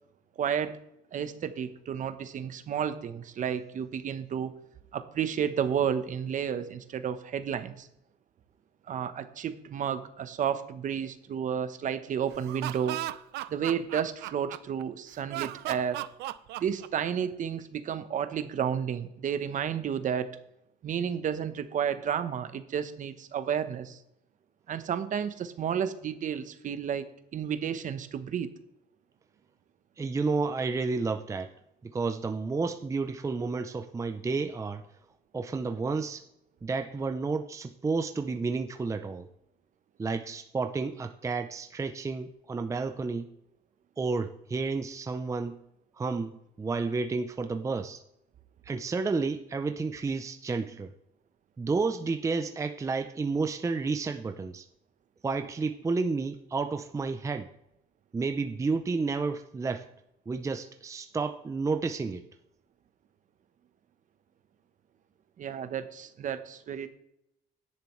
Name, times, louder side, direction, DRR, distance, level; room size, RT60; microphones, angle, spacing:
voice 1, 0.4-0.8 1.1-4.5 4.9-7.9 8.9-13.0 13.5-16.0 16.6-20.3 20.8-24.0 24.7-28.5 65.4-66.9, right 8 dB, 50° right, 10 dB, 1.0 m, -31 dB
Laughter, 12.3-14.8 15.3-17.3, right 15 dB, 80° right, 0.5 m, -36 dB
voice 2, 30.0-31.5 31.8-34.8 35.3-36.2 36.6-39.3 40.0-43.3 44.0-45.6 46.0-48.0 48.6-50.9 51.6-54.7 55.2-57.5 58.1-59.9 60.3-62.3, right 4 dB, 20° right, 7 dB, 0.6 m, -31 dB
12.5 x 10.5 x 3.2 m, 0.81 s
cardioid pair, 110°, 17 cm